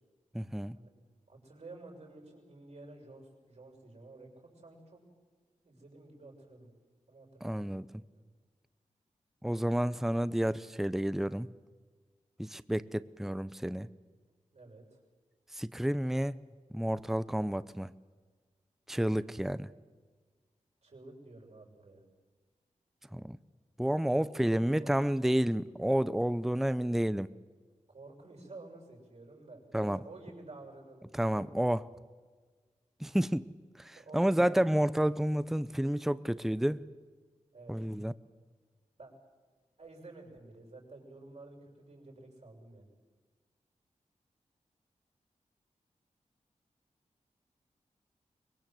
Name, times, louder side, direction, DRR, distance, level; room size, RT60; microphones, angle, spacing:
voice 1, 0.3-0.8 7.4-7.9 9.4-11.5 12.4-13.9 15.5-16.4 16.7-17.9 18.9-19.7 23.1-23.4 23.8-27.3 29.7-30.0 31.1-31.9 33.0-33.5 33.8-36.8 37.7-38.1, right 1 dB, 5° right, 16 dB, 0.7 m, -30 dB
voice 2, 1.3-5.0 5.6-6.7 7.1-7.9 8.1-8.3 14.5-15.0 19.2-19.7 20.8-22.0 24.1-25.0 27.9-31.6 33.9-34.8 37.5-37.7 39.0-39.1 39.8-42.9, right 2 dB, 60° right, 0 dB, 6.8 m, -51 dB
24.0 x 21.5 x 7.8 m, 1.5 s
cardioid pair, 60°, 13 cm